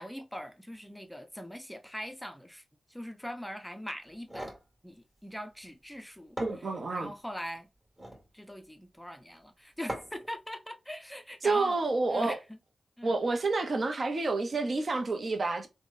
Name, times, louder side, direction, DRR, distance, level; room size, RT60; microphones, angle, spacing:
voice 1, 0.0-2.6 2.9-4.5 4.8-6.4 6.9-7.7 8.3-11.8 12.1-12.6 13.0-13.2, equal, 5° left, 0.4 m, -41 dB
sound 1, 4.1-4.7 5.9-6.0 6.4-7.1 7.8-8.3 9.9-10.3, right 1 dB, 20° right, 1.6 m, -40 dB
voice 2, 6.4-7.1 11.4-12.4 13.0-15.7, right 3 dB, 55° right, 0.6 m, -29 dB
3.4 x 2.1 x 2.5 m
cardioid pair, 65°, 0 cm